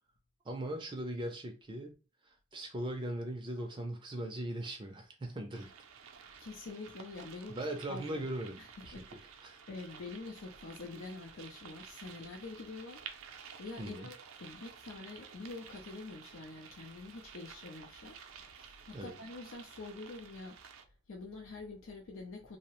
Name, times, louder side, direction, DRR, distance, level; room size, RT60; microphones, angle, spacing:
voice 1, 0.4-1.9 2.2-5.7 7.5-9.6 13.8-14.1 18.9-19.2, right 1 dB, 25° right, 0.4 m, -40 dB
sound 1, 5.5-20.8, right 7 dB, 85° right, 0.4 m, -53 dB
voice 2, 6.4-8.3 8.6-9.3 9.7-13.0 13.6-22.6, left 3 dB, 80° left, 0.5 m, -46 dB
2.7 x 2.0 x 2.9 m
head